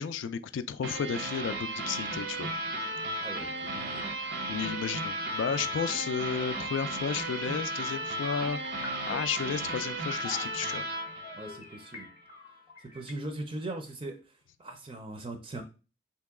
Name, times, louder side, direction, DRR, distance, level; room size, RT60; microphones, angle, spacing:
voice 1, 0.0-2.5 4.5-8.6 9.1-10.8, left 7 dB, 75° left, 13 dB, 0.3 m, -33 dB
sound 1, 0.8-12.1, right 1 dB, 75° right, 0.7 m, -35 dB
voice 2, 3.2-4.0 11.3-12.1 12.8-14.3 14.6-15.6, right 2 dB, 30° right, 5 dB, 0.5 m, -40 dB
sound 2, 5.9-6.1 6.3-13.1, left 2 dB, 35° left, 0.6 m, -46 dB
3.0 x 2.9 x 3.5 m, 0.32 s
head